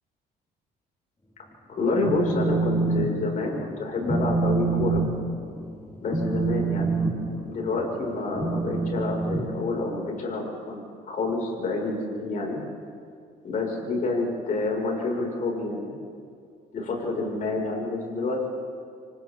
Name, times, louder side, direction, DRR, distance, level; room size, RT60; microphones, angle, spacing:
voice 1, 1.7-5.0 6.0-7.0 7.4-12.6 13.4-16.0 16.7-18.5, left 3 dB, 50° left, 0 dB, 6.5 m, -28 dB
Telephone, 1.8-3.1 3.4-3.7 4.0-10.1, right 3 dB, 20° left, 6.2 m, -27 dB
29.5 x 25.0 x 4.0 m, 2.3 s
cardioid pair, 110°, 17 cm